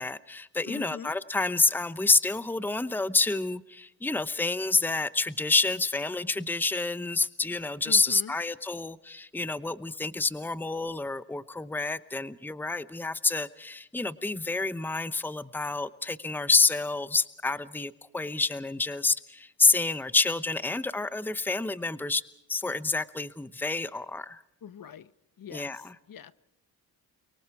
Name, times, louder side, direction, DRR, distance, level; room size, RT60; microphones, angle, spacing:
voice 1, 0.0-22.2 22.5-24.4 25.5-25.9, left 3 dB, 5° left, 15 dB, 0.9 m, -28 dB
voice 2, 0.7-1.1 7.8-8.3 24.6-25.1 25.4-26.3, left 8 dB, 55° left, 15 dB, 1.1 m, -43 dB
30.0 x 23.5 x 4.7 m, 0.78 s
cardioid pair, 85°, 41 cm